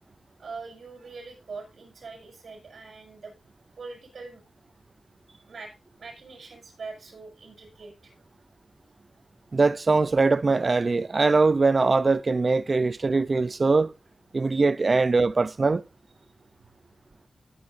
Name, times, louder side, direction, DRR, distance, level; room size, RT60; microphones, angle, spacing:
voice 1, 0.4-3.3 3.8-4.4 5.4-5.7 6.0-8.1, right 4 dB, 75° right, 7.0 m, -42 dB
voice 2, 9.5-13.9 14.3-15.8, right 3 dB, 35° right, 0.6 m, -22 dB
17.0 x 9.6 x 2.6 m
wide cardioid pair, 160°, 0 cm